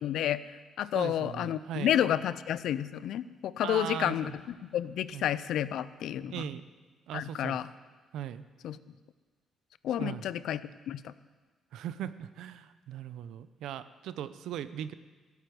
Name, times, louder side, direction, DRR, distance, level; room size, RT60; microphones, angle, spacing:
voice 1, 0.0-4.3 4.7-6.4 7.1-7.7 8.6-8.8 9.8-11.1, left 11 dB, 80° left, 16 dB, 0.6 m, -30 dB
voice 2, 0.9-2.0 3.6-4.3 5.1-5.3 6.3-6.6 7.1-7.6 8.1-8.4 10.0-10.2 11.7-14.9, right 10 dB, 85° right, 13 dB, 0.7 m, -38 dB
16.0 x 8.3 x 9.3 m, 1.4 s
cardioid pair, 90°, 0 cm